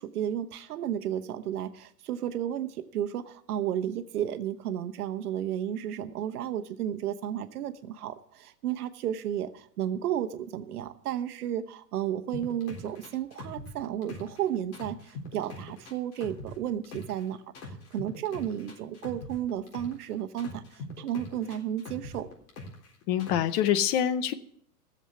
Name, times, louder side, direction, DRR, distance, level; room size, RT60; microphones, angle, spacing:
voice 1, 0.0-22.3, right 10 dB, 70° right, 9 dB, 1.1 m, -33 dB
sound 1, 12.3-14.4 14.7-17.2 17.5-20.0 20.4-22.9 23.2-23.6, left 3 dB, 60° left, 4.0 m, -42 dB
voice 2, 23.1-24.3, left 10 dB, 25° left, 14 dB, 0.5 m, -25 dB
14.5 x 7.3 x 7.0 m, 0.63 s
hypercardioid pair, 130°, 47 cm